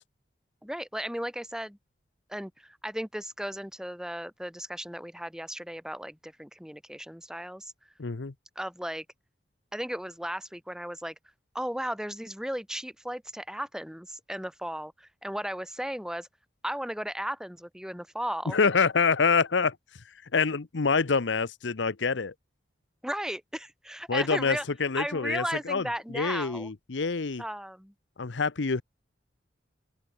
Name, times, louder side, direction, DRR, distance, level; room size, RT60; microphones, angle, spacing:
voice 1, 0.6-1.8 2.3-7.7 8.5-9.0 9.7-11.1 11.5-16.3 16.6-18.6 23.0-24.6 25.0-26.7 27.4-27.9, equal, 5° right, 2.8 m, -35 dB
voice 2, 8.0-8.3 18.5-19.7 20.3-22.3 24.1-25.8 26.1-27.4 28.2-28.8, left 5 dB, 85° left, 0.8 m, -26 dB
open air
head